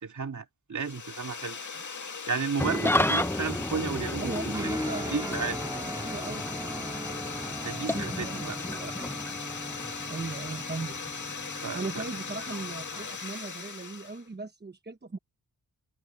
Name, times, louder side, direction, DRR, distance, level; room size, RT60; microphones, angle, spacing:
voice 1, 0.0-1.6 2.3-4.5 5.1-5.6 7.6-8.6 11.6-12.0, right 5 dB, 50° right, 2.6 m, -33 dB
sound 1, 0.8-14.2, left 5 dB, 50° left, 2.1 m, -39 dB
Engine starting / Idling, 2.6-13.2, left 1 dB, 5° left, 0.8 m, -33 dB
voice 2, 4.2-5.4 5.9-7.0 7.9-9.1 10.1-11.0 11.7-15.2, right 3 dB, 25° right, 1.1 m, -38 dB
Guitar, 4.5-13.0, right 1 dB, 10° right, 2.2 m, -42 dB
open air
wide cardioid pair, 105°, 37 cm